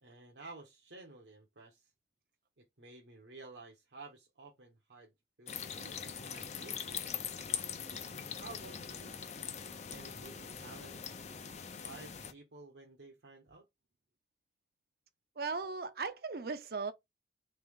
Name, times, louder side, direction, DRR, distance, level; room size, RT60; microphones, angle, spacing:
voice 1, 0.0-1.9 2.6-5.1 5.4-7.1 8.0-9.1 9.9-13.7, right 3 dB, 80° right, 1.0 m, -53 dB
sound 1, 5.5-12.3, left 7 dB, 40° left, 0.5 m, -42 dB
voice 2, 15.4-16.9, right 4 dB, 60° right, 0.6 m, -37 dB
3.6 x 3.4 x 3.5 m
head